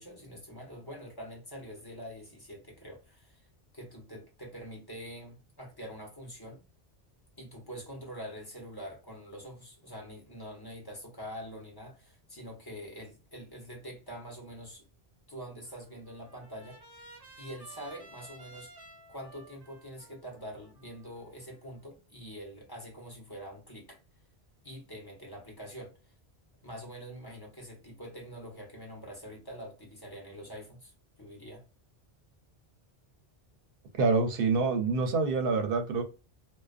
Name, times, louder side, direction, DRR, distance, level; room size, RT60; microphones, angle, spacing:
voice 1, 0.0-3.5 3.7-6.6 7.4-14.9 15.3-16.8 17.4-18.7 19.1-24.0 24.6-25.9 26.6-30.9 31.2-31.6, equal, 25° left, 0.8 m, -45 dB
Trumpet, 15.6-21.8, right 2 dB, 25° right, 0.6 m, -54 dB
voice 2, 34.0-36.0, right 4 dB, 65° right, 0.7 m, -26 dB
2.4 x 2.2 x 2.4 m
omnidirectional pair, 1.1 m